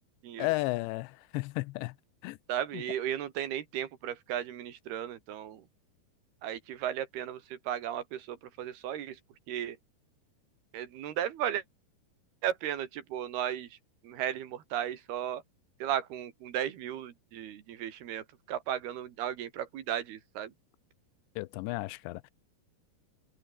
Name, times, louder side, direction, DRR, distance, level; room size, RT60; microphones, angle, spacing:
voice 1, 0.4-2.0 2.2-2.4 2.7-2.8 21.4-22.3, left 21 dB, 90° left, 2.9 m, -33 dB
voice 2, 2.5-5.7 6.4-9.2 9.5-9.8 10.7-11.6 12.4-13.8 14.0-15.4 15.8-20.5, right 10 dB, 65° right, 3.6 m, -35 dB
omnidirectional pair, 5.1 m